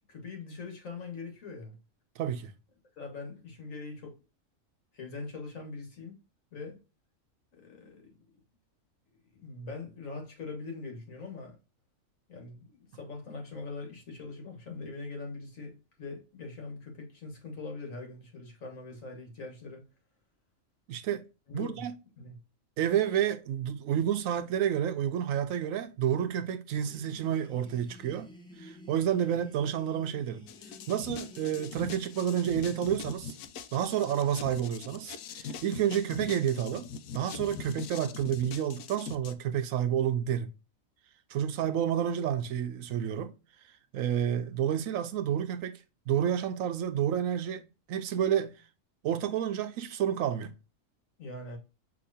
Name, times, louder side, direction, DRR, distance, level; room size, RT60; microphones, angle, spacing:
voice 1, 0.1-1.8 3.0-4.2 4.9-6.2 6.5-6.8 7.5-8.2 9.3-11.6 12.3-19.8 21.5-21.9 22.2-22.4 51.2-51.6, left 3 dB, 75° left, 1.9 m, -42 dB
voice 2, 2.2-2.5 20.9-21.2 21.5-21.9 22.8-28.3 28.6-30.4 30.9-33.4 33.7-36.9 37.1-40.5 41.3-43.3 43.9-45.8 46.1-48.5 49.0-50.5, right 9 dB, 85° right, 1.0 m, -30 dB
sound 1, 26.9-33.2, left 2 dB, 5° left, 0.6 m, -53 dB
sound 2, 30.5-39.3, left 6 dB, 90° left, 1.0 m, -42 dB
5.8 x 3.0 x 2.6 m
omnidirectional pair, 1.4 m